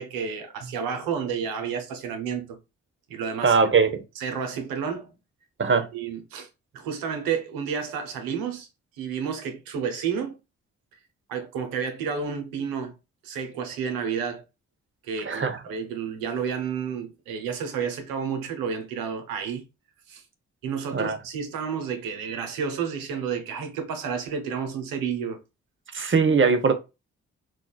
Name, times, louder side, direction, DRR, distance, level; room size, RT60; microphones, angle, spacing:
voice 1, 0.0-2.6 3.1-3.6 4.2-5.1 5.9-6.5 6.7-8.7 9.0-10.4 11.3-12.9 13.2-14.4 15.0-19.6 20.1-20.2 20.6-25.4, right 6 dB, 85° right, 0.8 m, -31 dB
voice 2, 3.4-4.0 5.6-5.9 15.2-15.6 20.9-21.2 25.9-26.7, right 5 dB, 35° right, 0.8 m, -21 dB
3.5 x 2.4 x 2.3 m
hypercardioid pair, 40°, 34 cm